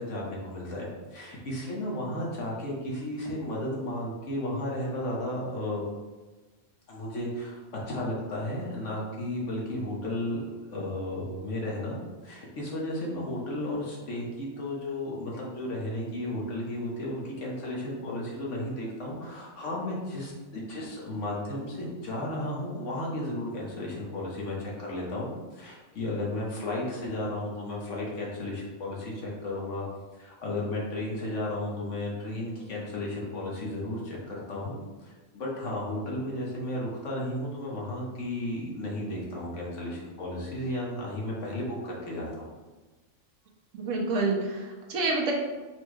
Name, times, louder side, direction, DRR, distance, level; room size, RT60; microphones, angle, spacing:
voice 1, 0.0-5.8 6.9-7.6 7.9-10.4 10.7-29.8 30.2-42.5, left 1 dB, 60° left, -4 dB, 1.3 m, -34 dB
voice 2, 43.7-45.3, right 3 dB, 65° right, -1 dB, 1.0 m, -28 dB
4.4 x 2.3 x 4.5 m, 1.2 s
omnidirectional pair, 1.5 m